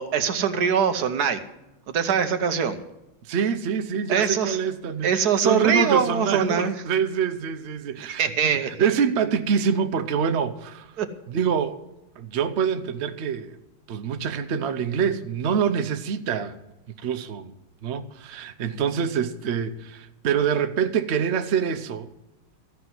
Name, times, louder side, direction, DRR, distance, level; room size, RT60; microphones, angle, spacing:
voice 1, 0.0-1.4 1.9-2.8 4.1-4.6 5.0-6.7 8.0-8.9 11.0-11.1, right 6 dB, 55° right, 1.3 m, -23 dB
voice 2, 3.2-11.0 11.3-11.8 12.2-13.6 13.9-16.6 17.0-17.5 17.8-22.1, right 7 dB, 85° right, 0.5 m, -25 dB
14.5 x 5.8 x 9.6 m
omnidirectional pair, 2.2 m